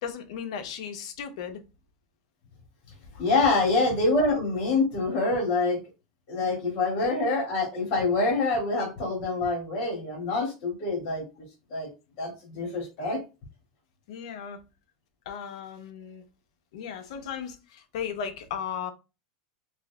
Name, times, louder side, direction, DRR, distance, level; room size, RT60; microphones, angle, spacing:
voice 1, 0.0-1.6 6.4-6.7 14.1-14.6 15.3-16.2 16.7-18.9, left 7 dB, 75° left, 0.8 m, -36 dB
voice 2, 3.1-5.8 6.3-11.2 11.7-11.9 12.2-13.2, left 3 dB, 45° left, 2.3 m, -26 dB
5.9 x 2.6 x 2.3 m
supercardioid pair, 145°, 3 cm